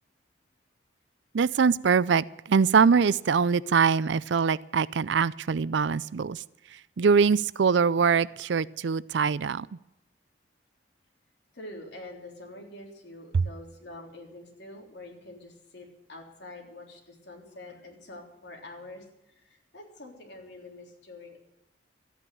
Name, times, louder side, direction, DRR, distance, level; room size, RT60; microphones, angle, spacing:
voice 1, 1.3-6.4 7.0-9.7 13.3-13.4, right 5 dB, 70° right, 20 dB, 0.4 m, -23 dB
voice 2, 11.5-21.4, left 2 dB, 65° left, 1 dB, 3.6 m, -46 dB
13.5 x 9.3 x 9.3 m, 0.90 s
head